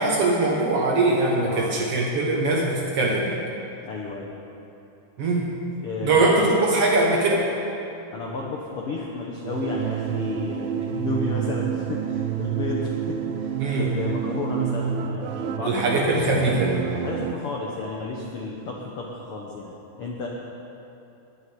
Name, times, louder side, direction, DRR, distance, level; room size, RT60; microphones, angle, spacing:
voice 1, 0.0-3.4 5.2-5.5 6.0-7.5 13.6-13.9 15.6-16.8, right 2 dB, 65° right, -1 dB, 1.5 m, -22 dB
voice 2, 1.5-1.8 3.8-4.3 5.8-6.3 8.1-16.4 16.9-20.3, left 3 dB, 85° left, -2 dB, 1.2 m, -32 dB
sound 1, 9.5-17.4, right 9 dB, 85° right, 2.4 m, -28 dB
10.0 x 7.9 x 9.4 m, 2.9 s
omnidirectional pair, 4.1 m